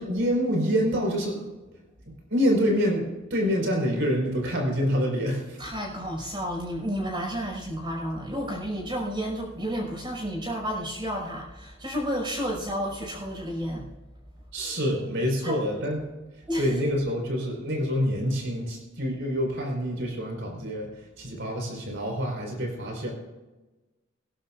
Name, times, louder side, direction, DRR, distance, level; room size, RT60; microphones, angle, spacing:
voice 1, 0.0-1.5 2.1-5.6 14.5-16.0 16.6-23.1, equal, 65° right, 0 dB, 4.7 m, -27 dB
voice 2, 5.6-13.9 15.4-15.6 16.5-16.8, equal, 25° right, -1 dB, 5.5 m, -31 dB
23.5 x 11.5 x 2.5 m, 1.1 s
head